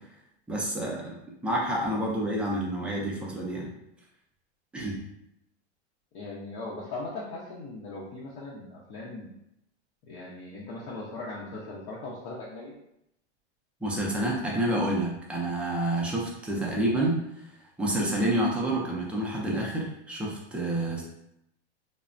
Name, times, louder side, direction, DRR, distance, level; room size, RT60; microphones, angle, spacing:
voice 1, 0.5-1.2 1.4-3.7 4.7-5.0 13.8-17.2 17.8-21.0, right 1 dB, 5° right, -4 dB, 0.4 m, -28 dB
voice 2, 6.1-9.3 10.1-12.7, left 2 dB, 50° left, -5 dB, 0.7 m, -39 dB
3.2 x 2.1 x 2.5 m, 0.80 s
supercardioid pair, 125°, 35 cm